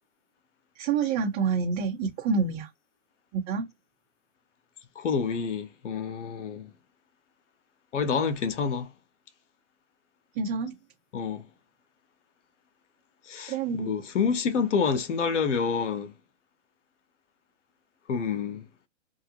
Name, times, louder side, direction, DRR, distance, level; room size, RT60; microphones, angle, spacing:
voice 1, 0.7-2.7 3.3-3.7 10.4-10.7 13.5-13.9, right 5 dB, 35° right, 1.2 m, -27 dB
voice 2, 5.0-6.7 7.9-8.9 11.1-11.4 13.3-16.1 18.1-18.6, left 5 dB, 85° left, 0.8 m, -28 dB
2.8 x 2.5 x 2.8 m
hypercardioid pair, 125°, 35 cm